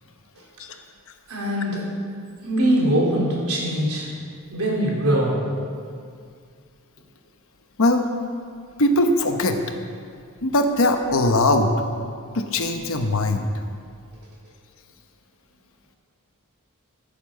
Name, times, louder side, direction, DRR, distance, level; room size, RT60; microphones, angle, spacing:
voice 1, 1.3-1.9 2.4-4.1 4.5-5.4, right 1 dB, 75° right, -4 dB, 3.5 m, -22 dB
voice 2, 8.8-9.6 10.4-11.7 12.3-13.5, left 1 dB, 65° left, 5 dB, 1.0 m, -20 dB
14.0 x 7.1 x 7.5 m, 2.2 s
head